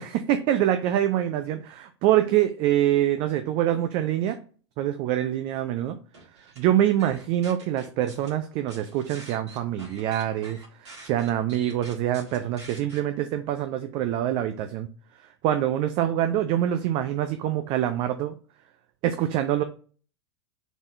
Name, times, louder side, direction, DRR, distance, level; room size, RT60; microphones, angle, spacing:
voice 1, 0.0-4.4 4.8-6.0 6.6-14.9 15.4-18.4 19.0-19.6, right 12 dB, 35° right, 8 dB, 0.4 m, -25 dB
sound 1, 6.1-6.6 7.0-8.3 8.7-13.0, right 3 dB, 70° right, 1.7 m, -46 dB
4.0 x 3.5 x 2.5 m, 0.39 s
figure-of-eight pair, 85°, 15 cm